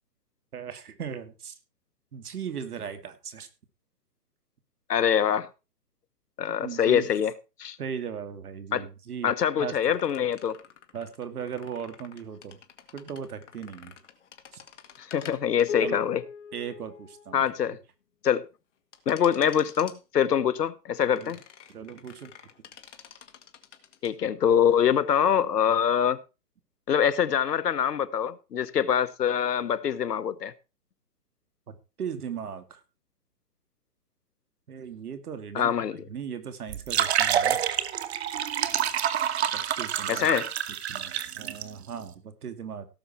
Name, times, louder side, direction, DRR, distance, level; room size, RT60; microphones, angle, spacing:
voice 1, 0.5-1.6 2.1-3.5 6.6-7.1 7.8-9.3 9.6-9.8 10.9-12.6 12.9-14.0 14.5-14.6 15.8-16.0 16.5-17.4 21.1-21.3 21.7-22.3 31.7-32.8 34.7-35.7 36.1-37.6 39.5-40.3 40.9-42.9, right 7 dB, 65° right, 2.7 m, -37 dB
voice 2, 4.9-5.5 6.4-7.3 7.6-7.8 8.7-8.9 9.2-10.6 15.0-16.2 17.3-17.8 18.2-18.4 19.1-21.4 24.0-26.2 26.9-30.5 35.5-36.0 40.1-40.5, left 8 dB, 75° left, 1.2 m, -24 dB
sound 1, 9.9-17.6 18.9-20.0 21.0-24.1, left 6 dB, 45° left, 2.0 m, -43 dB
sound 2, 36.7-41.6, right 10 dB, 40° right, 1.3 m, -27 dB
17.0 x 7.0 x 4.4 m
hypercardioid pair, 155°, 48 cm